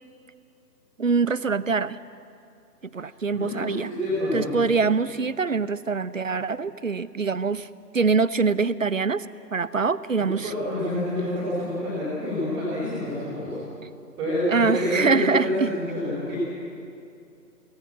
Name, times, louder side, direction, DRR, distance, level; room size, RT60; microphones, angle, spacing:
voice 1, 1.0-2.0 2.8-3.9 4.3-7.7 7.9-9.2 9.5-10.5 14.5-15.7, right 4 dB, 50° right, 17 dB, 0.7 m, -24 dB
voice 2, 3.3-4.5 10.4-13.6 14.2-16.4, left 1 dB, 10° right, -10 dB, 4.8 m, -27 dB
24.5 x 19.0 x 7.6 m, 2.5 s
figure-of-eight pair, 150°, 50 cm